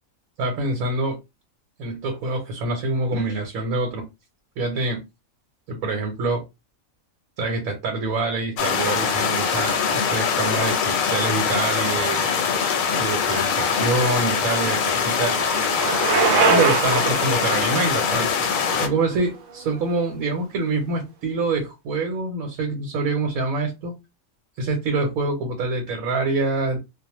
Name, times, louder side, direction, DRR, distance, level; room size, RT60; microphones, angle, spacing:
voice 1, 0.4-1.2 1.8-4.1 4.6-5.0 5.7-6.4 7.4-12.3 13.0-15.4 16.5-18.3 18.8-23.9 24.6-26.8, right 3 dB, 85° right, 1.1 m, -25 dB
sound 1, 8.6-18.9, left 6 dB, 75° left, 1.0 m, -23 dB
Bicycle, 13.8-19.8, right 4 dB, 70° right, 1.0 m, -25 dB
2.5 x 2.0 x 2.9 m
omnidirectional pair, 1.4 m